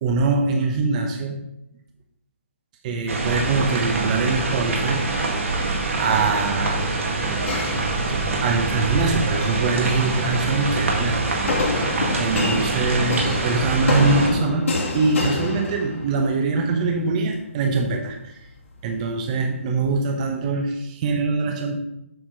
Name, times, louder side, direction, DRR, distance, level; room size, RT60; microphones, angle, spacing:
voice 1, 0.0-1.4 2.8-5.0 6.0-6.8 7.5-7.7 8.4-11.2 12.2-14.7 14.9-18.3 18.8-21.8, right 4 dB, 35° right, 3 dB, 1.0 m, -23 dB
sound 1, 3.1-14.3, right 3 dB, 70° right, 2.0 m, -25 dB
sound 2, 7.5-8.5 9.2-9.7 11.5-16.3, left 3 dB, 70° left, 2.5 m, -27 dB
7.9 x 5.0 x 5.0 m, 0.83 s
hypercardioid pair, 155°, 7 cm